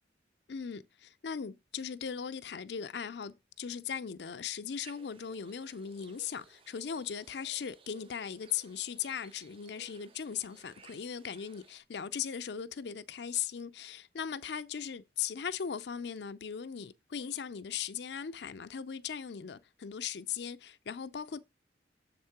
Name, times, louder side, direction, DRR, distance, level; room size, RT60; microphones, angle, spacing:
voice 1, 0.5-21.4, left 7 dB, 75° left, 0.5 m, -38 dB
sound 1, 4.8-11.8, right 5 dB, 30° right, 0.4 m, -59 dB
7.3 x 3.6 x 5.7 m
head